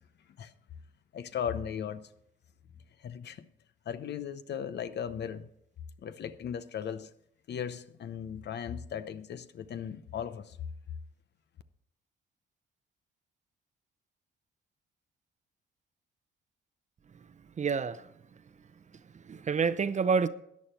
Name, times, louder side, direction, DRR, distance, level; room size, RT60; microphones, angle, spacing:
voice 1, 1.1-2.1 3.0-3.5 3.9-5.5 6.0-7.1 7.5-10.6, left 8 dB, 60° left, 0.8 m, -37 dB
voice 2, 17.6-18.4 19.1-20.3, right 5 dB, 35° right, 0.7 m, -29 dB
13.5 x 9.4 x 4.4 m
cardioid pair, 90°, 20 cm